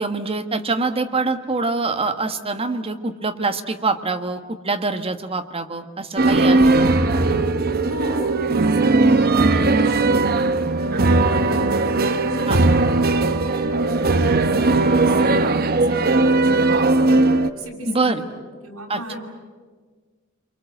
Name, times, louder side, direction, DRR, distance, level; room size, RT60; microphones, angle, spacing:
voice 1, 0.0-6.9 9.5-9.7 12.5-12.6 17.9-18.2 18.9-19.2, right 3 dB, 25° right, 7 dB, 1.4 m, -25 dB
sound 1, 6.2-17.5, right 2 dB, 45° right, 1.0 m, -18 dB
voice 2, 7.8-10.2 10.8-13.2 13.9-14.2 14.9-17.3 17.6-19.2, equal, 75° right, 1 dB, 6.1 m, -35 dB
28.5 x 23.5 x 7.9 m, 1.5 s
head